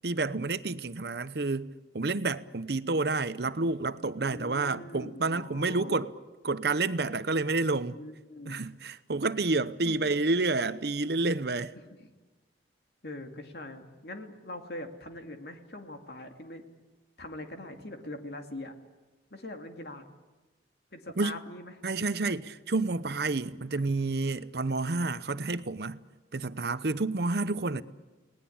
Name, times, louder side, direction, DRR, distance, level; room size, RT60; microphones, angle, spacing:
voice 1, 0.0-6.1 6.4-8.0 8.5-11.7 21.2-21.3 21.8-26.0 26.3-27.8, right 3 dB, 60° right, 0.8 m, -29 dB
voice 2, 4.3-6.0 7.9-8.6 9.9-10.0 11.8-12.1 13.0-16.6 17.2-18.7 19.3-20.0 20.9-21.8 27.7-27.8, left 1 dB, 60° left, 2.5 m, -42 dB
30.0 x 19.0 x 8.7 m
head